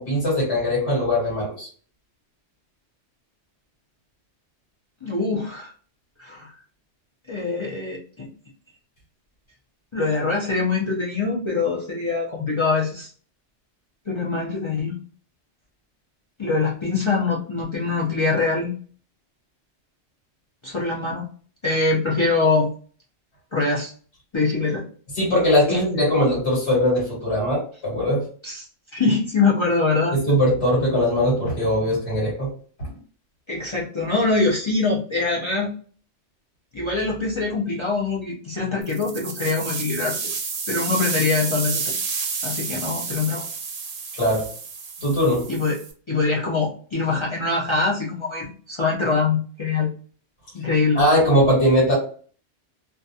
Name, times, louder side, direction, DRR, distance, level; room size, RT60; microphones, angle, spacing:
voice 1, 0.0-1.7 25.2-28.2 30.1-32.5 44.1-44.4 45.0-45.4 51.0-52.0, equal, 75° left, -3 dB, 1.3 m, -20 dB
voice 2, 5.0-5.7 6.2-6.5 7.3-8.3 9.9-13.1 14.1-15.0 16.4-18.7 20.6-21.3 21.6-22.7 23.5-23.9 24.3-24.8 28.4-28.6 28.9-30.2 33.5-35.7 36.7-40.2 40.7-42.0 42.4-43.5 45.5-45.7 46.1-49.9 50.5-51.0, left 3 dB, 45° left, -5 dB, 0.3 m, -23 dB
sound 1, 38.8-45.9, right 5 dB, 60° right, 0.6 m, -30 dB
2.3 x 2.2 x 2.6 m, 0.43 s
omnidirectional pair, 1.2 m